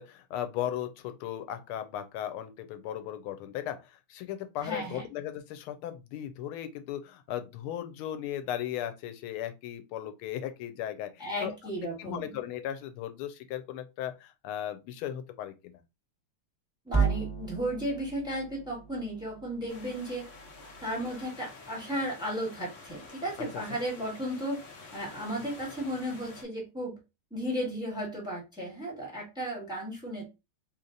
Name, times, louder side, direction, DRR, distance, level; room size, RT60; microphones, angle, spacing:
voice 1, 0.0-11.5 12.0-15.8 23.4-23.8, left 11 dB, 90° left, 1.5 m, -37 dB
voice 2, 4.6-5.0 11.2-12.3 16.8-20.2 20.8-24.6 24.9-26.9 27.3-30.2, equal, ahead, 1.6 m, -34 dB
sound 1, 16.9-21.2, right 6 dB, 15° left, 1.2 m, -34 dB
sound 2, 19.7-26.4, left 3 dB, 45° left, 1.1 m, -49 dB
3.3 x 2.9 x 3.8 m
omnidirectional pair, 2.3 m